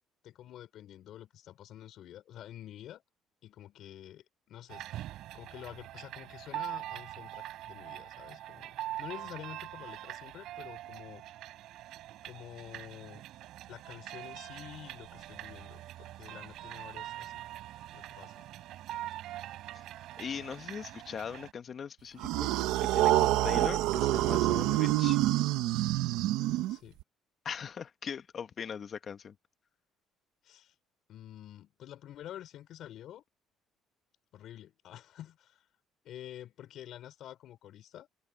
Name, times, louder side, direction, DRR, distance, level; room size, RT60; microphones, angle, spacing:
voice 1, 0.2-3.0 3.4-5.0 5.3-11.2 12.2-13.2 13.7-17.4 17.9-18.5 26.7-27.0 30.4-30.8 31.1-33.2 34.3-35.7 36.0-38.1, left 12 dB, 60° left, 5.6 m, -48 dB
sound 1, 4.7-21.5, right 14 dB, 70° right, 5.5 m, -43 dB
voice 2, 20.2-22.5 22.9-25.2 27.4-29.3, left 7 dB, 40° left, 1.5 m, -40 dB
sound 2, 22.2-27.0, right 16 dB, 90° right, 1.3 m, -27 dB
open air
cardioid pair, 125°, 0 cm